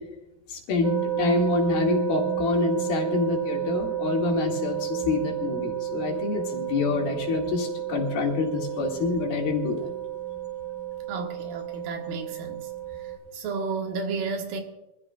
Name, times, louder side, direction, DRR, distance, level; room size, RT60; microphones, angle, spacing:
voice 1, 0.5-9.9, left 4 dB, 80° left, -1 dB, 4.0 m, -27 dB
sound 1, 0.8-13.2, right 11 dB, 50° right, 3.2 m, -31 dB
voice 2, 11.1-12.7 13.3-14.6, right 4 dB, 75° right, 3 dB, 3.1 m, -32 dB
24.5 x 14.5 x 2.4 m, 0.96 s
omnidirectional pair, 4.2 m